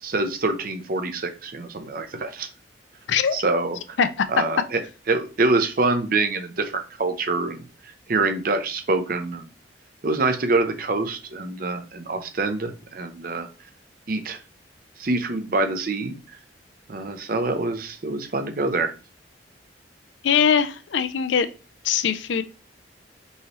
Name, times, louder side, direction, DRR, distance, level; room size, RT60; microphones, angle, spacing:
voice 1, 0.0-2.5 3.3-4.0 4.3-4.8 5.1-9.5 10.0-13.5 14.1-14.4 15.0-16.1 16.9-18.9, right 3 dB, 50° right, 8 dB, 0.6 m, -25 dB
voice 2, 20.2-21.5 21.8-22.4, left 7 dB, 75° left, 12 dB, 0.4 m, -21 dB
5.4 x 3.0 x 3.1 m, 0.32 s
head